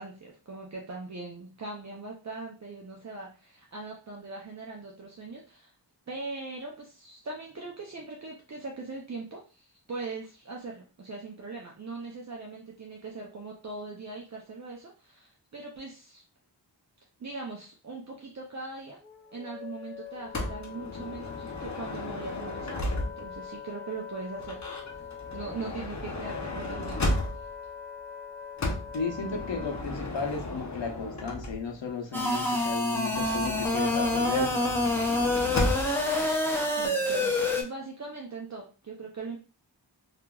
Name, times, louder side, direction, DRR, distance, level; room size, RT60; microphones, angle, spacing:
voice 1, 0.0-5.7 6.1-16.2 17.2-19.0 19.3-24.6 25.3-27.1 36.8-39.4, right 3 dB, 40° right, -1 dB, 0.5 m, -40 dB
Wind instrument woodwind instrument, 19.0-29.9, left 7 dB, 25° right, 1.2 m, -43 dB
Motor vehicle (road) / Sliding door, 20.3-23.4 24.4-27.6 28.6-31.9 33.1-36.1, left 1 dB, 40° left, 0.6 m, -34 dB
voice 2, 28.9-34.5, left 4 dB, 90° left, 3 dB, 0.7 m, -34 dB
sound 1, 32.1-37.6, left 2 dB, 5° left, 0.6 m, -27 dB
2.8 x 2.4 x 2.3 m, 0.35 s
wide cardioid pair, 50°, 43 cm